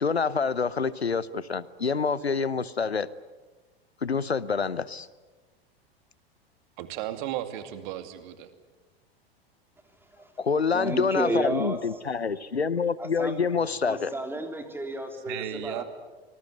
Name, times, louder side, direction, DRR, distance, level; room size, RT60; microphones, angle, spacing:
voice 1, 0.0-3.1 4.0-5.1 10.4-14.1, left 5 dB, 85° left, 19 dB, 0.9 m, -27 dB
voice 2, 6.8-8.5 15.3-15.8, right 12 dB, 50° right, 9 dB, 2.4 m, -34 dB
voice 3, 10.7-11.8 13.0-13.5 13.8-15.8, right 2 dB, 5° right, 5 dB, 3.5 m, -32 dB
25.0 x 20.0 x 9.4 m, 1.3 s
figure-of-eight pair, 90°, 31 cm